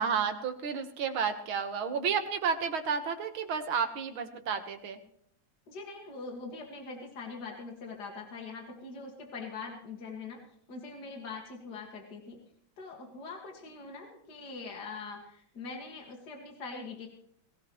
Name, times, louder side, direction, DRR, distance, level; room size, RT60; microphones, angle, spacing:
voice 1, 0.0-5.0, right 6 dB, 80° right, 6 dB, 2.2 m, -31 dB
voice 2, 5.7-10.4 10.7-12.4 12.8-17.1, left 4 dB, 55° left, 1 dB, 2.6 m, -43 dB
20.5 x 17.0 x 3.2 m, 0.70 s
omnidirectional pair, 2.2 m